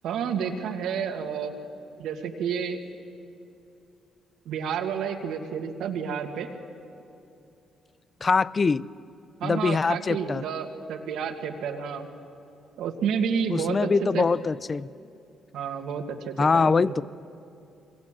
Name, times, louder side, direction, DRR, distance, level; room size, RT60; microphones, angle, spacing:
voice 1, 0.0-1.5 2.0-2.8 4.5-6.5 9.4-12.1 12.8-13.9 14.1-14.3 15.5-17.1, right 7 dB, 85° right, 3 dB, 2.2 m, -30 dB
voice 2, 8.2-8.8 9.4-10.4 13.5-14.9 16.4-17.0, left 4 dB, 35° left, 19 dB, 0.5 m, -23 dB
25.5 x 22.5 x 7.6 m, 2.7 s
cardioid pair, 90°, 0 cm